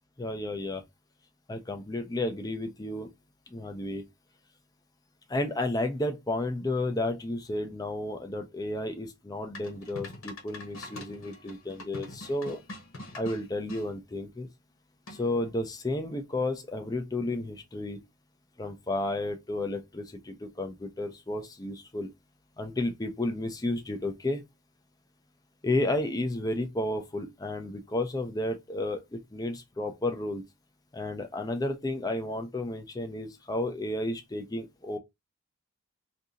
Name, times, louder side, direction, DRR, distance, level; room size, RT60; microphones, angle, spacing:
voice 1, 0.2-0.8 1.5-3.1 3.5-4.0 5.3-12.6 13.1-14.5 15.1-18.0 18.6-22.1 22.6-24.4 25.6-30.4 30.9-35.0, left 1 dB, 15° left, 0.5 m, -32 dB
sound 1, 9.6-13.9 15.1-15.5, left 1 dB, 70° left, 1.1 m, -44 dB
2.8 x 2.6 x 3.6 m
head